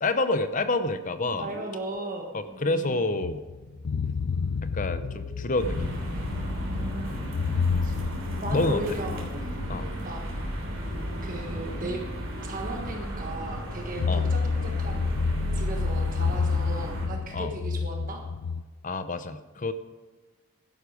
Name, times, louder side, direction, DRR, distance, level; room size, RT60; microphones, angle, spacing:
voice 1, 0.0-1.5 2.3-3.4 4.7-6.0 8.5-9.0 9.7-9.9 14.0-14.3 17.3-17.5 18.8-19.7, left 2 dB, 35° left, 11 dB, 0.7 m, -28 dB
voice 2, 1.2-3.0 6.6-7.3 7.8-7.9 8.4-9.5 10.0-10.2 11.2-12.1 12.4-15.2 15.5-18.2, right 1 dB, 40° right, 2 dB, 1.4 m, -37 dB
sound 1, 1.3-17.4, right 2 dB, 80° right, 2.4 m, -50 dB
sound 2, 3.2-11.7 12.2-12.3 14.0-18.6, left 5 dB, 80° left, 0.5 m, -30 dB
sound 3, 5.5-17.1, equal, 60° right, 3.1 m, -34 dB
12.0 x 11.0 x 4.9 m, 1.3 s
head